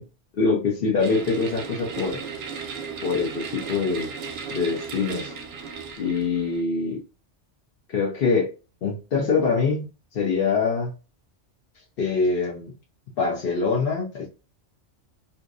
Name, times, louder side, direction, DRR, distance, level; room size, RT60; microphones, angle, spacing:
voice 1, 0.4-2.2 3.0-4.1 4.5-5.3 6.0-7.0 7.9-8.5 8.8-9.9 10.1-10.9 12.0-12.7 13.2-14.3, left 4 dB, 60° left, -2 dB, 0.8 m, -24 dB
sound 1, 1.0-6.6, right 5 dB, 65° right, 0.8 m, -35 dB
2.6 x 2.1 x 2.3 m, 0.32 s
omnidirectional pair, 1.2 m